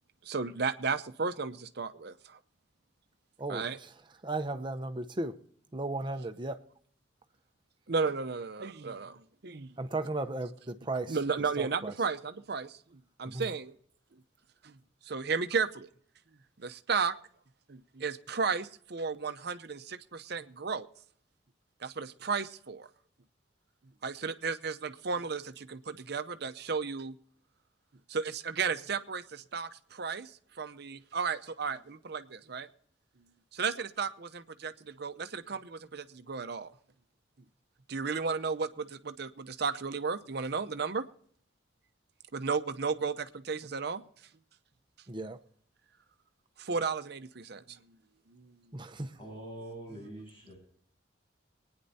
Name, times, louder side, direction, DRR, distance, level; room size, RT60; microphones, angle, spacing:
voice 1, 0.2-2.4 3.5-3.8 7.9-9.8 11.1-13.7 14.6-14.7 15.1-15.9 16.6-17.2 17.7-20.9 21.8-22.9 24.0-27.2 28.1-30.3 30.6-32.7 33.5-36.7 37.9-41.1 42.3-44.0 46.6-47.8 48.3-48.6, right 5 dB, 60° right, 0.7 m, -34 dB
voice 2, 3.4-3.9 4.2-5.4 5.7-6.6 9.8-11.2 11.6-11.9 13.2-13.5 45.1-45.4 48.7-49.2, right 2 dB, 25° right, 0.8 m, -35 dB
voice 3, 49.2-50.6, right 1 dB, 30° left, 7.1 m, -44 dB
24.0 x 9.8 x 2.7 m
head